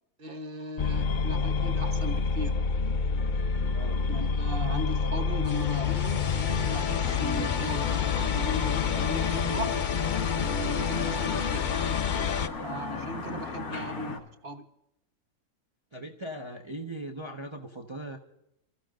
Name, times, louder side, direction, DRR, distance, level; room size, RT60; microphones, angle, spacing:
voice 1, 0.2-2.6 4.1-9.8 10.3-11.7 12.6-14.7, right 1 dB, 40° right, 1.2 m, -37 dB
sound 1, 0.8-12.5, left 6 dB, 55° left, 0.5 m, -27 dB
sound 2, 7.0-14.2, left 4 dB, 75° left, 2.5 m, -38 dB
voice 2, 15.9-18.2, right 1 dB, 20° right, 0.9 m, -39 dB
30.0 x 14.5 x 2.5 m
omnidirectional pair, 1.6 m